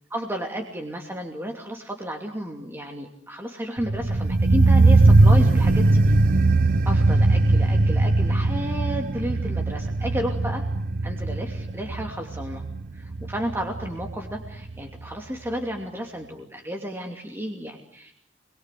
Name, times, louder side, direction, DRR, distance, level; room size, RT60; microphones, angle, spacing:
voice 1, 0.1-6.2 6.8-10.6 11.0-12.6 12.9-18.2, equal, 15° right, 2 dB, 2.7 m, -32 dB
sound 1, 3.8-14.8 15.0-15.1, right 2 dB, 50° right, 1.0 m, -20 dB
27.5 x 22.5 x 8.5 m, 0.68 s
head